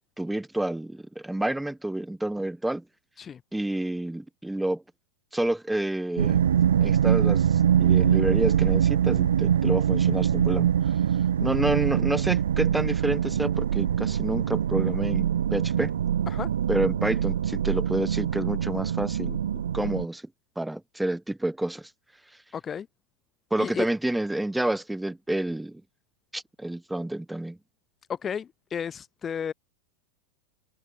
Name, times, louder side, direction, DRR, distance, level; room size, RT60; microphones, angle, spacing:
voice 1, 0.2-2.8 3.5-4.8 5.3-6.4 6.8-10.7 11.4-15.9 16.7-19.5 19.7-20.2 20.6-21.9 23.5-25.8 26.3-27.6, right 1 dB, 5° right, 6.4 m, -29 dB
sound 1, 6.2-20.0, right 9 dB, 65° right, 1.1 m, -24 dB
voice 2, 22.5-22.9 23.6-23.9 28.1-29.5, left 7 dB, 20° left, 2.5 m, -33 dB
figure-of-eight pair, 90°, 0 cm